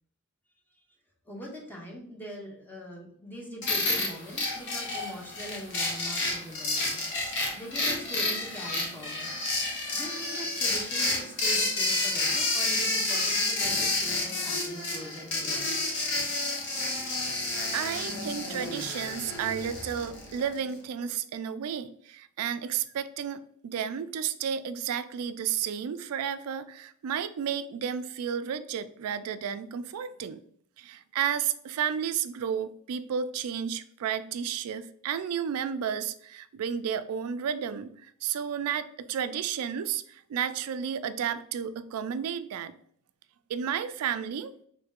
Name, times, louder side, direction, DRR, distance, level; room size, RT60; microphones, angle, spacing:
voice 1, 1.3-7.0 7.5-9.3 9.9-15.7, right 1 dB, 10° left, -2 dB, 0.7 m, -42 dB
sound 1, 3.6-20.6, left 2 dB, 55° left, 0.9 m, -30 dB
voice 2, 17.7-30.4 30.8-42.7 43.5-44.5, right 8 dB, 75° right, 12 dB, 0.3 m, -32 dB
3.1 x 2.8 x 3.5 m, 0.62 s
head